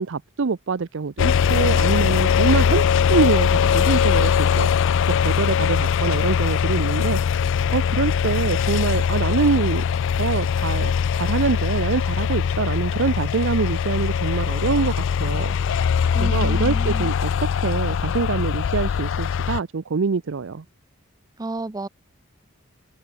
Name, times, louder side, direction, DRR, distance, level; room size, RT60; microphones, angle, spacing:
voice 1, 0.0-2.8 3.1-7.2 7.7-9.8 10.2-15.8 16.2-17.3 17.6-20.6, right 4 dB, 65° right, 0.6 m, -25 dB
sound 1, 1.2-19.6, left 7 dB, 65° left, 0.4 m, -21 dB
voice 2, 16.1-17.1 21.4-21.9, right 2 dB, 20° right, 0.6 m, -30 dB
head